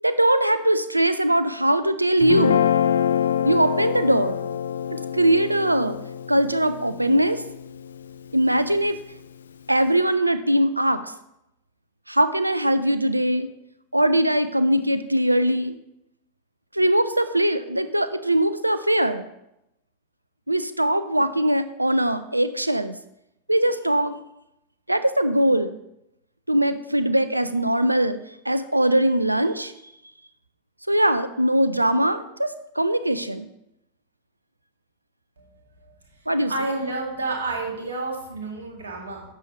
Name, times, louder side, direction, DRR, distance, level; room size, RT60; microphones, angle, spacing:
voice 1, 0.0-2.6 3.4-4.4 5.1-6.0 6.3-7.4 8.3-9.0 9.7-11.0 12.1-13.5 13.9-15.7 16.7-19.3 20.5-22.9 23.5-24.2 24.9-25.8 26.5-28.2 28.5-29.7 30.9-33.5 36.3-36.5, right 1 dB, 85° right, 12 dB, 0.5 m, -21 dB
Guitar, 2.2-8.5, left 8 dB, 70° left, 0.4 m, -26 dB
voice 2, 36.5-39.2, right 2 dB, 70° right, 0 dB, 2.3 m, -30 dB
11.0 x 6.9 x 3.2 m, 0.84 s
figure-of-eight pair, 90°, 0 cm